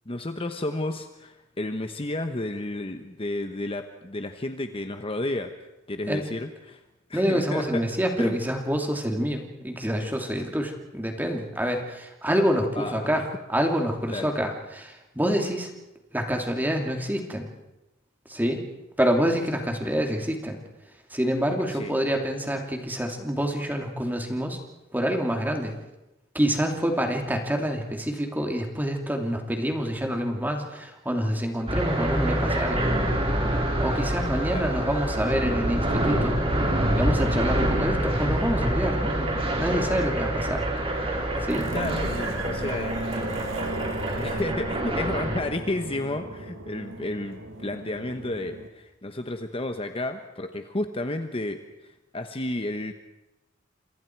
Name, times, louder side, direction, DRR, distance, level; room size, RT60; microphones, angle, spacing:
voice 1, 0.1-6.8 7.1-7.9 8.2-8.4 12.8-13.2 14.1-14.3 21.7-21.9 34.5-34.7 41.7-43.1 44.1-52.9, left 2 dB, 30° left, 7 dB, 1.1 m, -32 dB
voice 2, 7.1-15.7 16.1-17.5 18.3-18.6 19.0-20.6 21.1-24.6 24.9-25.7 26.3-32.9 33.8-36.4 37.0-40.6 41.4-41.7, equal, 10° right, 3 dB, 2.9 m, -27 dB
sound 1, 31.7-45.4, right 1 dB, 30° right, 4.1 m, -26 dB
sound 2, 40.1-48.7, right 1 dB, 75° right, 2.2 m, -36 dB
29.5 x 26.5 x 4.7 m, 0.96 s
head